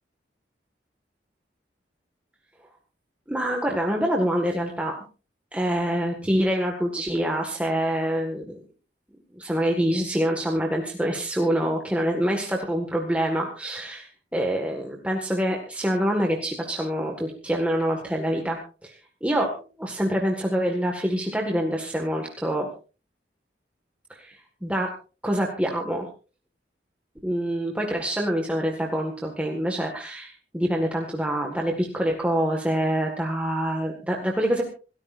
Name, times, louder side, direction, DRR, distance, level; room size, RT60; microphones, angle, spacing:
voice 1, 3.3-5.0 5.5-8.6 9.4-19.5 19.8-22.7 24.2-24.9 25.2-26.1 27.2-34.6, equal, 5° right, 1 dB, 1.8 m, -26 dB
27.0 x 13.5 x 2.6 m, 0.36 s
head